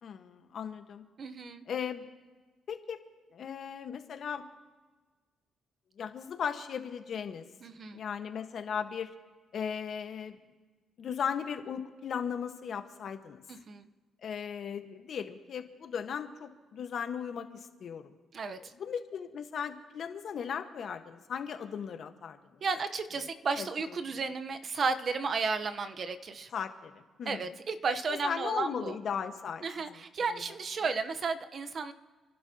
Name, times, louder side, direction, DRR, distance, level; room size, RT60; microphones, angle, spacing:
voice 1, 0.0-1.1 1.7-2.1 2.7-3.0 3.3-4.4 6.0-7.5 7.9-9.1 9.5-10.4 11.0-13.4 14.2-18.1 18.6-22.6 23.6-24.0 26.5-27.4 28.2-29.6 30.3-30.4, left 7 dB, 60° left, 7 dB, 1.3 m, -37 dB
voice 2, 1.2-1.6 7.6-8.0 13.5-13.9 18.3-18.7 22.6-26.5 27.2-29.0 29.6-31.9, right 4 dB, 50° right, 9 dB, 0.9 m, -33 dB
30.0 x 11.5 x 2.9 m, 1.3 s
cardioid pair, 90°, 0 cm